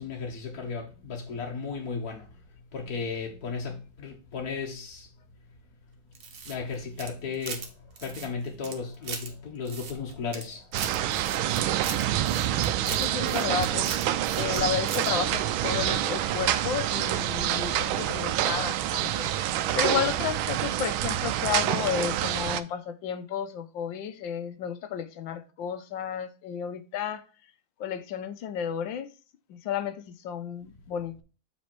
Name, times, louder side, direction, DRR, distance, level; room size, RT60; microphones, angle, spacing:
voice 1, 0.0-2.4 2.7-5.1 6.4-7.7 8.0-11.3, left 5 dB, 50° left, 1.6 m, -35 dB
sound 1, 6.1-7.7 8.0-9.3 9.7-10.4 10.7-14.6 14.9-15.1, right 6 dB, 65° right, 1.8 m, -38 dB
sound 2, 10.7-22.6, right 12 dB, 90° right, 1.4 m, -27 dB
voice 2, 12.9-14.0 14.4-19.3 19.7-27.3 27.8-29.1 29.5-31.2, left 8 dB, 75° left, 1.5 m, -32 dB
7.3 x 4.2 x 4.5 m
omnidirectional pair, 2.2 m